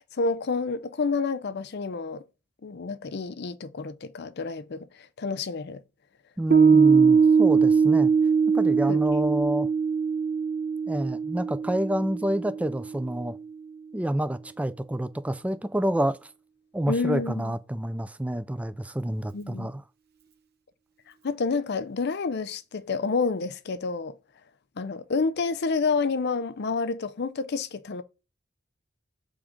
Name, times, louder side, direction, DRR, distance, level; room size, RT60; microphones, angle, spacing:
voice 1, 0.0-2.2 2.6-5.8 6.7-6.8 8.9-9.0 16.9-17.5 19.3-19.7 21.2-24.2 24.8-28.0, left 4 dB, 55° left, 0.5 m, -29 dB
voice 2, 6.4-8.1 8.5-9.7 10.9-13.4 13.9-16.2 16.7-19.8, right 1 dB, 5° right, 0.3 m, -28 dB
Piano, 6.5-13.3, right 5 dB, 50° right, 0.9 m, -21 dB
7.4 x 3.5 x 5.0 m
head